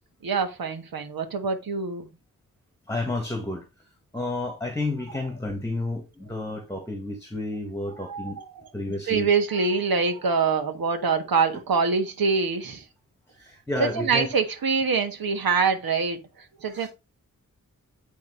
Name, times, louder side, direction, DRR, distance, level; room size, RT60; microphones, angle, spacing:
voice 1, 0.2-2.1 8.1-8.6 9.1-12.8 13.8-16.2 16.6-16.9, right 5 dB, 90° right, 1.5 m, -24 dB
voice 2, 2.9-3.6 4.1-8.4 8.7-9.3 13.4-14.3 16.7-16.9, left 2 dB, 10° left, 1.6 m, -31 dB
8.7 x 3.5 x 5.5 m
wide cardioid pair, 130°, 34 cm